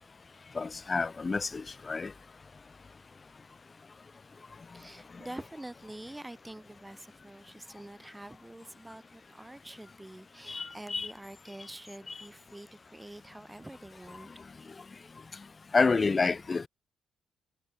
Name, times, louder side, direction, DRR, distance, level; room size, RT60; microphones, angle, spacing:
voice 1, 0.5-2.1 10.5-11.1 12.1-12.2 15.7-16.7, left 4 dB, 30° left, 1.6 m, -28 dB
voice 2, 4.7-14.3, right 1 dB, 10° right, 4.1 m, -46 dB
cardioid pair, 90°, 0 cm